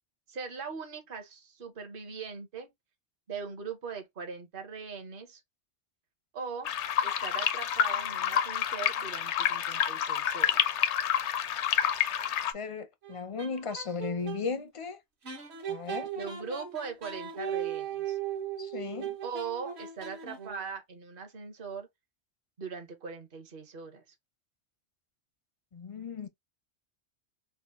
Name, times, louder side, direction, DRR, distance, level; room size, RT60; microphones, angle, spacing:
voice 1, 0.3-2.7 3.3-5.4 6.3-6.7 7.0-10.6 16.2-18.2 19.2-21.9 22.6-24.0, right 5 dB, 55° right, 1.1 m, -40 dB
sound 1, 6.6-12.5, left 9 dB, 85° left, 0.9 m, -28 dB
voice 2, 12.5-15.0 15.7-16.1 18.6-19.2 25.7-26.3, left 5 dB, 45° left, 0.4 m, -36 dB
sound 2, 13.0-14.4 15.2-20.7, right 8 dB, 70° right, 1.5 m, -38 dB
4.2 x 2.0 x 3.4 m
omnidirectional pair, 1.1 m